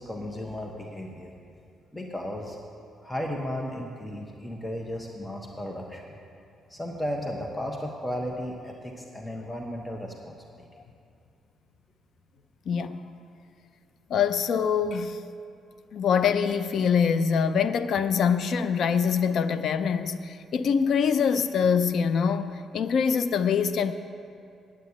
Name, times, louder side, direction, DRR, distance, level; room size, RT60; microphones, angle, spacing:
voice 1, 0.0-1.3 1.9-2.6 3.0-6.1 6.7-10.4, equal, 15° left, 1 dB, 1.2 m, -34 dB
voice 2, 12.7-13.0 14.1-15.2 15.9-23.9, left 6 dB, 65° left, 12 dB, 0.5 m, -24 dB
9.2 x 9.0 x 8.4 m, 2.5 s
cardioid pair, 90°, 0 cm